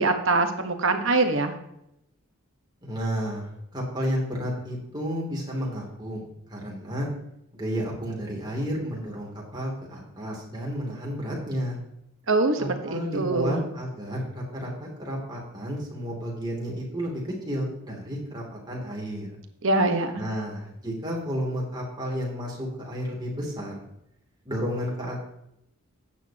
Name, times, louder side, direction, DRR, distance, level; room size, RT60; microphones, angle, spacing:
voice 1, 0.0-1.5 12.3-13.6 19.6-20.2, right 2 dB, 60° right, 6 dB, 1.3 m, -23 dB
voice 2, 2.8-7.1 7.5-11.8 12.6-19.3 20.2-23.7 24.4-25.3, equal, 20° right, -2 dB, 2.9 m, -32 dB
12.5 x 9.2 x 3.0 m, 0.80 s
head